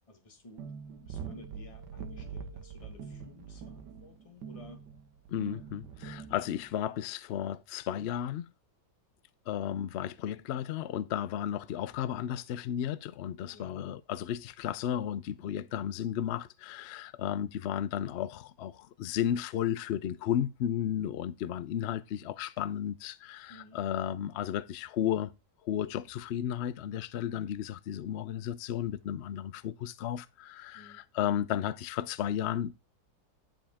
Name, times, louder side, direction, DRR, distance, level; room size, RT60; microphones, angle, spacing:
voice 1, 0.1-4.8 13.5-13.8 23.5-23.8 30.7-31.0, left 2 dB, 20° left, 1.5 m, -54 dB
sound 1, 0.6-6.8, right 6 dB, 85° right, 1.7 m, -44 dB
voice 2, 5.3-8.5 9.5-25.3 25.6-32.7, left 10 dB, 80° left, 0.6 m, -34 dB
10.5 x 5.2 x 3.5 m
omnidirectional pair, 1.8 m